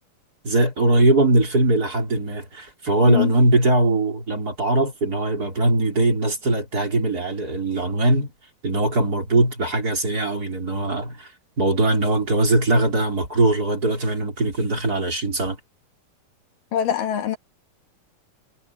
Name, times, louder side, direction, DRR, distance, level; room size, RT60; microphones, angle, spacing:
voice 1, 0.4-8.3 8.6-11.3 11.6-15.6, right 2 dB, 25° right, 4.0 m, -21 dB
voice 2, 16.7-17.4, left 10 dB, 75° left, 3.5 m, -23 dB
omnidirectional pair, 3.9 m